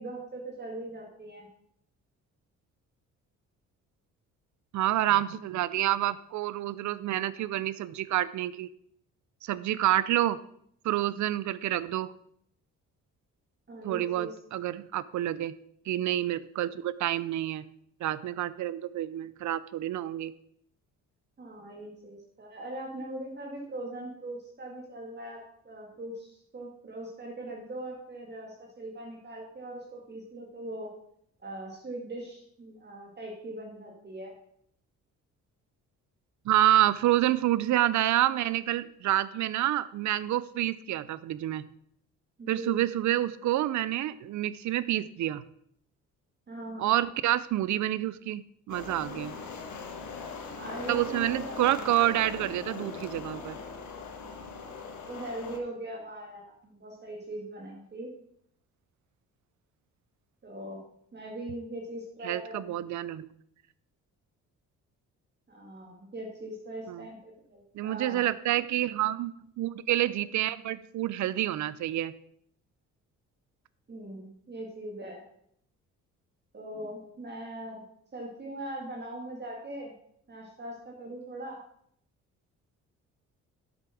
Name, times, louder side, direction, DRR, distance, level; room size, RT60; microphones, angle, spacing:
voice 1, 0.0-1.5 13.7-14.4 21.4-30.9 31.4-34.3 42.4-42.8 46.5-47.0 50.5-51.5 55.1-58.1 60.4-60.8 61.1-62.8 65.5-68.2 73.9-75.2 76.5-77.8 78.1-79.9 80.3-81.6, right 1 dB, 35° right, -1 dB, 2.2 m, -40 dB
voice 2, 4.7-8.7 9.4-10.4 10.8-12.1 13.8-15.5 15.9-17.6 18.0-20.3 36.5-41.7 42.5-45.4 46.8-49.3 50.9-53.6 62.2-63.3 66.9-67.1 67.7-72.1, right 13 dB, 70° right, 17 dB, 0.6 m, -28 dB
sound 1, 48.7-55.6, left 5 dB, 70° left, 1.6 m, -40 dB
8.1 x 7.4 x 6.0 m, 0.70 s
cardioid pair, 90°, 30 cm